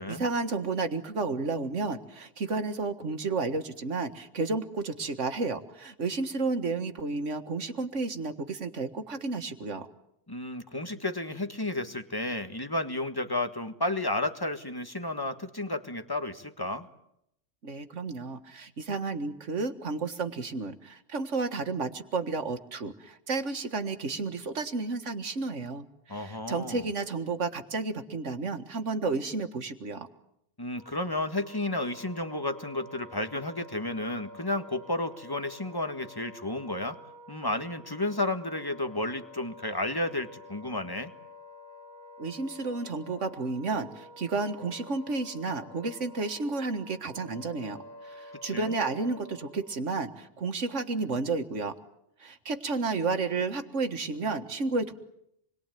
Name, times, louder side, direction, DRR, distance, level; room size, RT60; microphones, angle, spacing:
voice 1, 0.0-9.9 17.6-30.1 42.2-51.7 52.2-54.9, right 3 dB, 85° right, 9 dB, 2.0 m, -32 dB
voice 2, 10.3-16.9 26.1-26.9 30.6-37.0 37.3-41.1 48.4-48.7, left 2 dB, 20° left, 8 dB, 1.7 m, -32 dB
Wind instrument woodwind instrument, 30.7-49.8, left 2 dB, 60° left, 3.5 m, -49 dB
27.5 x 21.5 x 9.3 m, 0.77 s
omnidirectional pair, 1.2 m